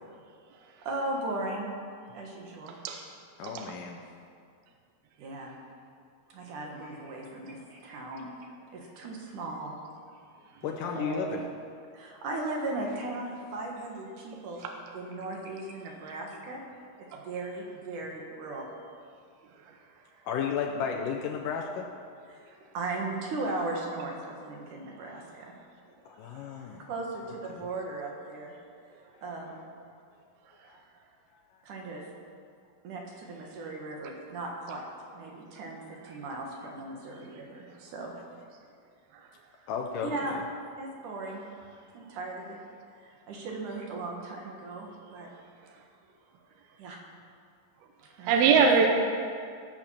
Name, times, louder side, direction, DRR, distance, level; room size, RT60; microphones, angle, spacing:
voice 1, 0.8-1.7 2.1-2.8 5.2-5.5 6.3-8.3 8.7-9.8 11.9-16.6 17.0-18.7 22.3-25.5 26.9-28.5 29.2-29.5 31.6-32.0 32.8-34.8 35.1-38.2 40.0-40.4 40.8-41.4 41.9-42.6 43.0-45.3 46.8-47.0 48.2-48.6, right 2 dB, 60° right, 0 dB, 2.6 m, -37 dB
voice 2, 3.4-4.0 10.6-11.5 20.3-21.9 26.1-26.9 27.5-27.6 30.7-30.8 39.7-40.4, left 7 dB, 80° left, 1 dB, 1.9 m, -33 dB
voice 3, 11.0-11.5 48.3-48.9, right 5 dB, 75° right, 3 dB, 2.6 m, -22 dB
18.0 x 5.9 x 7.2 m, 2.3 s
omnidirectional pair, 4.7 m